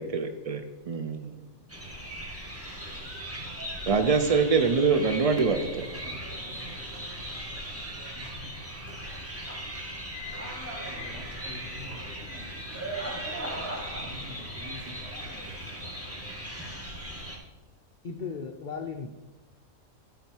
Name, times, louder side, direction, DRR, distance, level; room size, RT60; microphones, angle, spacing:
voice 1, 0.0-1.4 3.9-5.9, right 5 dB, 70° right, 7 dB, 0.3 m, -25 dB
sound 1, 1.7-17.4, equal, 10° right, 1.6 m, -38 dB
voice 2, 5.9-7.2 8.2-8.3 10.9-12.4 13.3-16.8, left 1 dB, 30° right, -3 dB, 2.5 m, -47 dB
voice 3, 13.9-14.6 15.3-15.4 18.0-19.1, left 5 dB, 50° left, 3 dB, 0.6 m, -38 dB
12.5 x 5.8 x 4.5 m, 1.1 s
omnidirectional pair, 1.4 m